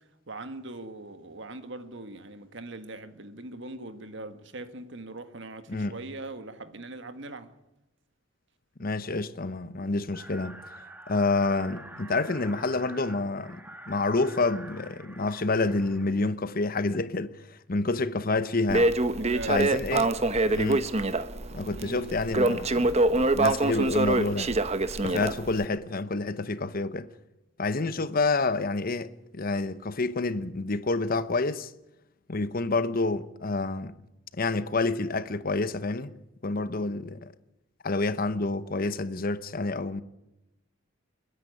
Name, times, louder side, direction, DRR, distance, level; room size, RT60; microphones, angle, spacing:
voice 1, 0.3-7.5 19.2-19.6 21.8-22.1, right 2 dB, 65° right, 1.6 m, -41 dB
voice 2, 8.8-10.6 11.1-19.0 19.5-20.1 20.4-20.9 21.5-24.5 25.0-27.1 27.6-31.7 32.3-34.0 34.3-36.1 36.4-37.3 37.8-40.0, left 3 dB, 45° left, 0.9 m, -28 dB
sound 1, 10.1-16.3, right 1 dB, 10° right, 1.5 m, -47 dB
Crackle, 18.7-25.7, right 2 dB, 35° right, 1.0 m, -25 dB
29.5 x 10.5 x 9.2 m
head